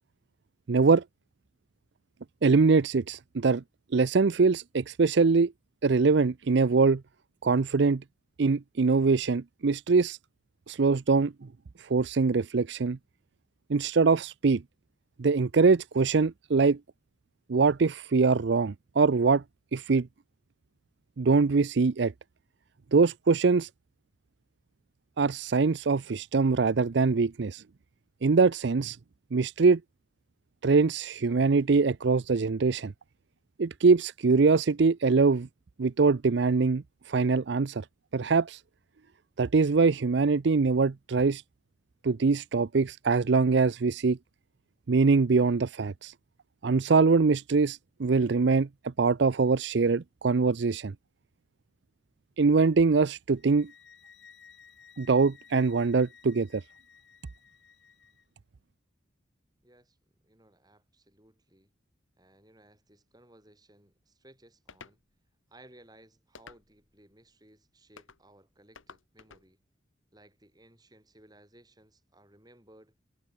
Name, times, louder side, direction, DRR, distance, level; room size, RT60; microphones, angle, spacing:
voice 1, 0.7-1.0 2.4-3.6 3.9-5.5 5.8-7.0 7.4-8.0 8.4-10.2 10.7-11.3 11.8-13.0 13.7-14.6 15.2-16.8 17.5-19.4 19.7-20.1 21.2-22.1 22.9-23.7 25.2-27.6 28.2-29.0 29.3-29.8 30.6-32.9 33.6-35.5 35.8-37.9 38.1-38.6 39.4-41.4 42.0-44.2 44.9-46.1 46.6-50.9 52.4-53.7 55.0-56.6, right 4 dB, 60° right, 0.5 m, -23 dB
sound 1, 53.4-58.3, left 7 dB, 60° left, 6.8 m, -56 dB
voice 2, 59.6-60.0 60.2-61.7 62.2-65.0 65.5-69.6 70.1-73.0, right 1 dB, 20° right, 6.2 m, -59 dB
sound 2, 64.7-65.0 66.3-66.9 68.0-68.2 68.7-69.5, left 5 dB, 85° left, 1.5 m, -51 dB
head